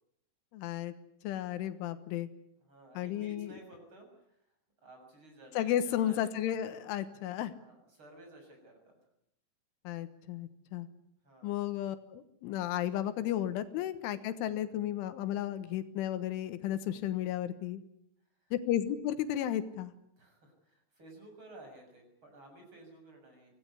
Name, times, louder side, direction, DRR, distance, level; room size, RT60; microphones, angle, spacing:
voice 1, 0.5-0.9 1.2-2.3 3.0-3.5 5.6-7.5 9.9-10.9 11.4-17.8 18.5-19.9, left 11 dB, 85° left, 11 dB, 3.7 m, -33 dB
voice 2, 2.6-4.4 4.8-6.3 7.1-7.2 7.5-9.0 11.2-11.6 18.5-18.6 20.2-23.5, right 2 dB, 25° right, 3 dB, 7.5 m, -54 dB
25.5 x 18.0 x 9.8 m, 0.76 s
omnidirectional pair, 5.4 m